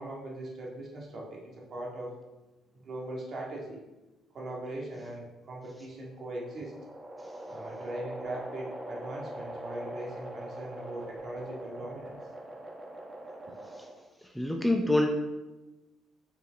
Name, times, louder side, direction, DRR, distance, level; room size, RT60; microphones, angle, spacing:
voice 1, 0.0-2.1 2.7-3.8 4.3-6.7 7.5-12.1, right 1 dB, 50° right, -3 dB, 1.8 m, -40 dB
sound 1, 5.9-14.2, right 1 dB, 25° right, 1.3 m, -43 dB
voice 2, 14.4-15.1, left 1 dB, ahead, 3 dB, 0.6 m, -25 dB
5.5 x 4.6 x 4.0 m, 1.1 s
cardioid pair, 95°, 0 cm